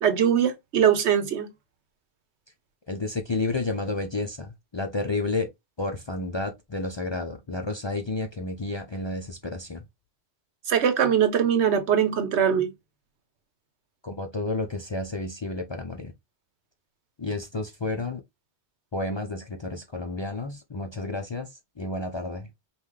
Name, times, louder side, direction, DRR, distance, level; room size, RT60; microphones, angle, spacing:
voice 1, 0.0-1.5 10.7-12.7, right 8 dB, 85° right, 1.1 m, -22 dB
voice 2, 2.9-5.5 5.8-9.8 14.0-16.1 17.2-18.2 18.9-21.5 21.8-22.5, left 2 dB, 40° left, 0.4 m, -31 dB
5.5 x 2.4 x 3.2 m
omnidirectional pair, 1.1 m